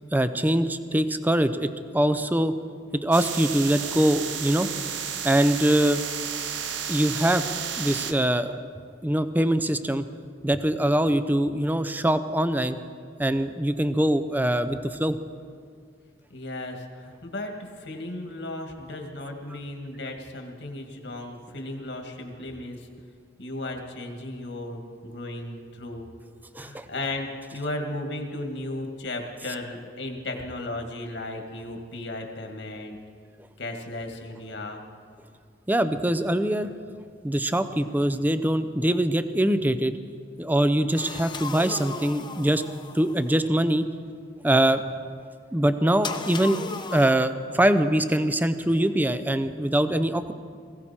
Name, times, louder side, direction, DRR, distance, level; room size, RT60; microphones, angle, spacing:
voice 1, 0.1-2.5 3.0-4.7 5.2-6.0 6.9-7.4 7.8-8.6 9.0-10.0 10.4-12.8 13.2-15.2 26.5-26.9 35.7-36.7 37.2-40.0 40.4-42.6 42.9-43.9 44.4-44.8 45.5-46.6 46.9-50.3, right 1 dB, 10° right, 11 dB, 0.5 m, -23 dB
sound 1, 3.1-8.1, right 8 dB, 90° right, 1.0 m, -32 dB
voice 2, 16.3-22.9 23.4-26.1 26.6-33.0 33.6-34.8, left 2 dB, 70° left, 3 dB, 2.1 m, -35 dB
sound 2, 40.9-43.4 46.0-47.1, left 4 dB, 25° left, 0.8 m, -36 dB
20.5 x 16.0 x 4.4 m, 2.1 s
head